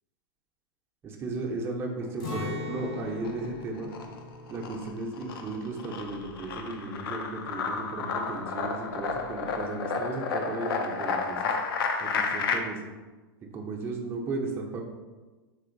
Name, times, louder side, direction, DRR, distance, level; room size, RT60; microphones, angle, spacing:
voice 1, 1.0-3.9 4.5-11.6 12.0-12.8 13.5-14.8, right 3 dB, 20° right, 0 dB, 0.4 m, -35 dB
Acoustic guitar, 2.2-8.1 8.4-8.6 9.1-9.5, left 3 dB, 60° left, 1.0 m, -41 dB
sound 1, 2.6-3.5 3.8-12.6, left 5 dB, 80° left, 0.4 m, -31 dB
3.6 x 2.4 x 2.5 m, 1.3 s
hypercardioid pair, 125°, 12 cm